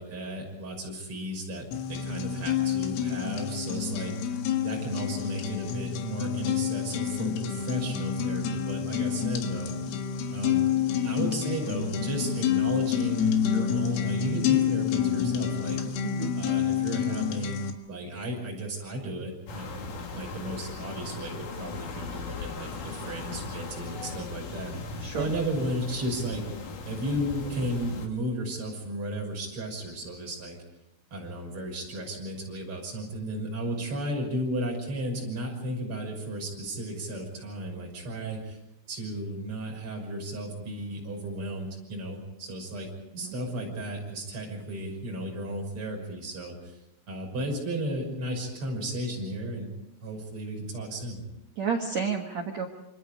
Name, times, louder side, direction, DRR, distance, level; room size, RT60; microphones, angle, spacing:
voice 1, 0.0-9.7 10.3-10.6 11.0-15.8 16.4-17.6 17.9-19.9 20.1-24.7 25.2-26.5 26.8-30.6 31.1-38.6 38.9-46.8 47.1-49.7 50.0-51.2, right 1 dB, 25° right, 0 dB, 6.4 m, -34 dB
sound 1, 1.7-17.7, left 8 dB, 85° left, 4.3 m, -28 dB
voice 2, 16.0-16.3 25.0-25.3 43.2-43.3 51.6-52.7, right 6 dB, 85° right, 2 dB, 1.5 m, -30 dB
sound 2, 19.5-28.1, left 3 dB, 50° left, 3.1 m, -38 dB
27.0 x 25.5 x 5.1 m, 0.85 s
omnidirectional pair, 5.8 m